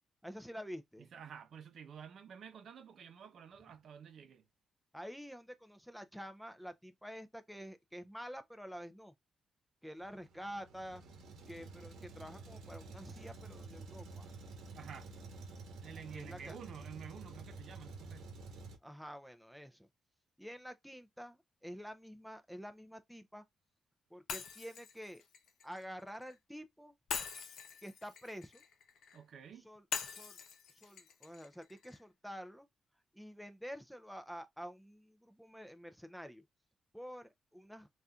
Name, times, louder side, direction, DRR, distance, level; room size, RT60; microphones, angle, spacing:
voice 1, 0.2-1.1 4.9-9.1 9.8-11.0 11.5-14.3 16.1-16.6 18.8-19.9 20.4-23.4 24.1-25.2 25.6-26.9 27.8-28.6 29.6-30.4 30.7-32.7 33.1-36.4 36.9-37.9, equal, ahead, 0.5 m, -48 dB
voice 2, 1.0-4.4 14.7-15.1 15.8-18.3 29.1-29.7, right 7 dB, 65° right, 0.7 m, -51 dB
Truck, 10.0-18.8, right 3 dB, 90° right, 1.0 m, -50 dB
Shatter, 24.3-26.4 27.1-29.2 29.9-32.0, left 7 dB, 80° left, 0.8 m, -44 dB
4.0 x 2.4 x 2.3 m
cardioid pair, 105°, 0 cm